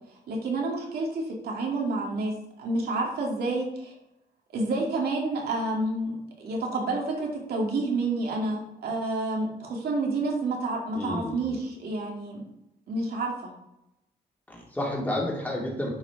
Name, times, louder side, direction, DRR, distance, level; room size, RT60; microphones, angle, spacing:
voice 1, 0.3-3.9 4.5-12.4 12.9-13.5, right 2 dB, 75° right, -1 dB, 2.4 m, -29 dB
voice 2, 10.9-11.5 14.5-16.0, left 1 dB, 10° left, -3 dB, 2.6 m, -30 dB
10.5 x 5.1 x 4.7 m, 0.86 s
cardioid pair, 130°, 16 cm